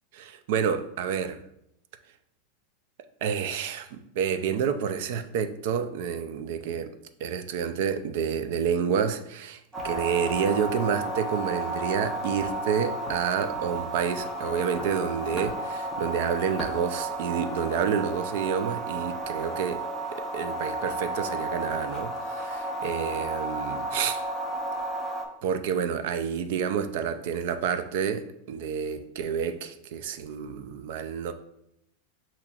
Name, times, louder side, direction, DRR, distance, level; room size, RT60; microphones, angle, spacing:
voice 1, 0.1-1.4 3.2-6.9 7.2-19.8 20.1-24.2 25.4-31.3, right 7 dB, 50° right, 0.4 m, -29 dB
sound 1, 9.7-25.2, right 1 dB, 5° right, 0.7 m, -33 dB
7.2 x 2.9 x 2.4 m
supercardioid pair, 170°, 0 cm